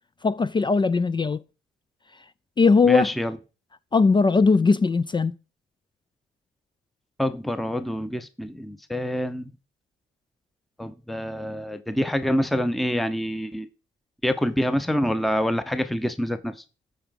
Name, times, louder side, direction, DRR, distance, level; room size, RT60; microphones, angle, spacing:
voice 1, 0.2-1.4 2.6-3.1 3.9-5.4, left 4 dB, 25° left, 0.4 m, -19 dB
voice 2, 2.8-3.4 7.2-9.4 10.8-13.7 14.2-16.6, equal, ahead, 0.8 m, -26 dB
13.5 x 4.9 x 5.2 m
cardioid pair, 90°, 20 cm